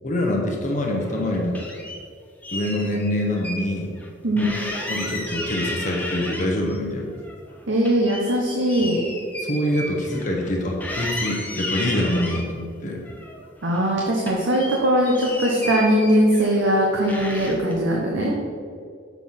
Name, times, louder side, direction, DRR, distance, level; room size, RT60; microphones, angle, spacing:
voice 1, 0.0-1.6 2.5-3.9 4.3-4.5 4.9-7.1 9.4-13.0 18.2-18.4, left 1 dB, 40° left, 0 dB, 1.0 m, -25 dB
sound 1, 0.9-2.0 2.4-3.7 4.0-4.1 4.4-6.8 7.1-10.5 10.8-12.5 13.1-13.9 14.2-16.7 17.1-17.7, left 1 dB, 10° left, 0.8 m, -33 dB
voice 2, 4.2-4.6 7.7-9.1 13.6-18.4, equal, 65° right, -2 dB, 0.9 m, -20 dB
7.0 x 4.6 x 5.6 m, 2.2 s
head